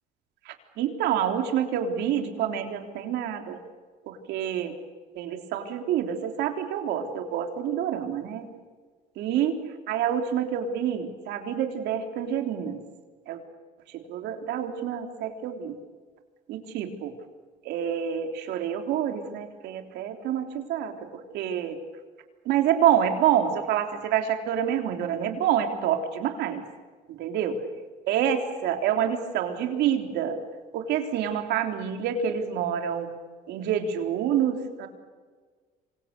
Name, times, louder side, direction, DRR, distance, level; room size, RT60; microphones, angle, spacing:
voice 1, 0.5-3.6 4.1-4.7 5.2-8.4 9.2-12.8 13.3-13.4 14.1-15.8 16.5-17.1 17.6-21.0 21.3-21.8 22.5-26.6 27.1-27.6 28.1-30.4 30.7-33.1 33.5-34.9, right 9 dB, 85° right, 5 dB, 3.6 m, -27 dB
27.5 x 25.0 x 6.8 m, 1.5 s
cardioid pair, 110°, 17 cm